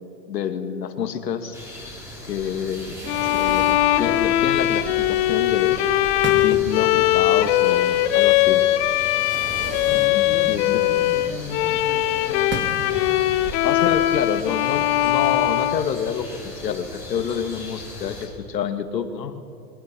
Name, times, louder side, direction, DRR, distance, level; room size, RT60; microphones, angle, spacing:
voice 1, 0.3-1.6 2.3-3.0 3.3-5.8 6.3-8.6 9.9-10.8 13.6-19.5, left 7 dB, 75° left, 8 dB, 2.2 m, -28 dB
sound 1, 1.5-18.3, left 1 dB, 5° right, 7.1 m, -39 dB
Fireworks, 2.4-15.4, right 3 dB, 20° right, 2.5 m, -38 dB
Bowed string instrument, 3.1-16.5, left 14 dB, 40° left, 1.2 m, -20 dB
voice 2, 9.5-12.5, left 5 dB, 20° left, 0 dB, 3.2 m, -36 dB
28.5 x 22.5 x 6.2 m, 2.4 s
hypercardioid pair, 115°, 50 cm